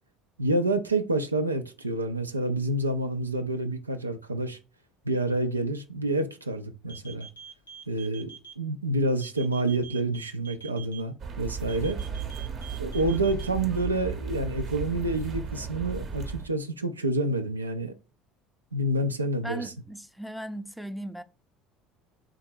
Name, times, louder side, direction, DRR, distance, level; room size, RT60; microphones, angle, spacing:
voice 1, 0.4-4.6 5.0-7.3 7.9-8.3 8.6-12.0 12.8-17.9 18.7-19.7, right 2 dB, 85° right, 0.4 m, -28 dB
sound 1, 6.9-8.5 9.2-11.0 11.7-13.5, right 8 dB, 80° left, 0.8 m, -45 dB
sound 2, 11.2-16.5, right 6 dB, 40° right, 0.8 m, -35 dB
voice 2, 19.4-21.2, right 1 dB, ahead, 0.5 m, -37 dB
3.7 x 2.9 x 4.4 m
figure-of-eight pair, 65°, 0 cm